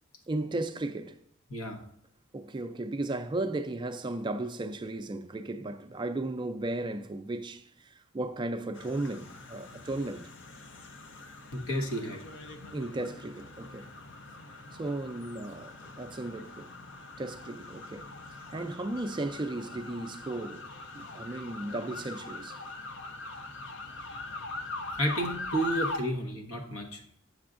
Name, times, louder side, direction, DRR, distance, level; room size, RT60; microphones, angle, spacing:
voice 1, 0.3-1.2 2.3-10.3 12.7-13.9 14.7-16.7 17.2-18.1 18.3-20.7 20.9-22.6, right 2 dB, 20° right, 0.3 m, -35 dB
sound 1, 8.7-26.0, left 2 dB, 60° left, 0.6 m, -42 dB
voice 2, 11.5-12.2 12.6-12.7 24.9-27.0, right 1 dB, 80° left, 1.2 m, -32 dB
7.7 x 6.7 x 2.5 m
head